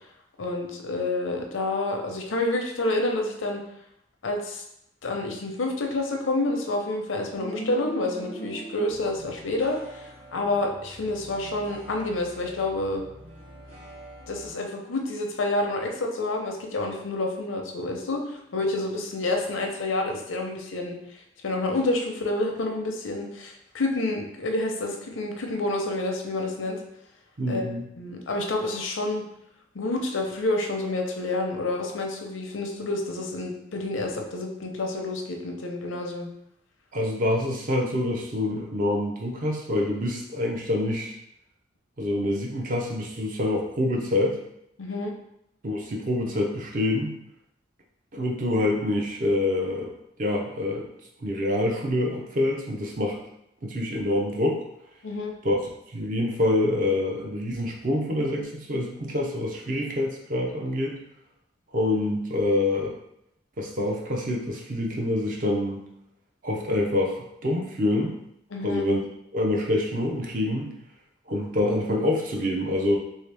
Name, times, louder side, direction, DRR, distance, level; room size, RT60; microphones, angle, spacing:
voice 1, 0.4-3.6 4.2-4.6 5.0-13.0 14.3-21.0 21.4-26.8 27.5-27.7 28.0-29.2 29.7-36.3 44.8-45.1 55.0-55.3 68.5-68.9, left 2 dB, 90° left, 2 dB, 0.6 m, -28 dB
sound 1, 7.3-14.5, right 2 dB, 85° right, 1.2 m, -42 dB
voice 2, 27.4-27.8 36.9-41.1 42.0-44.4 45.6-47.1 48.1-49.9 50.2-50.9 51.2-53.2 53.6-54.6 55.4-55.6 55.9-61.0 61.7-62.9 63.6-65.8 66.4-68.1 68.6-69.0 69.3-70.7 71.3-73.0, left 1 dB, 45° right, 0 dB, 0.5 m, -26 dB
3.2 x 2.8 x 3.3 m, 0.78 s
head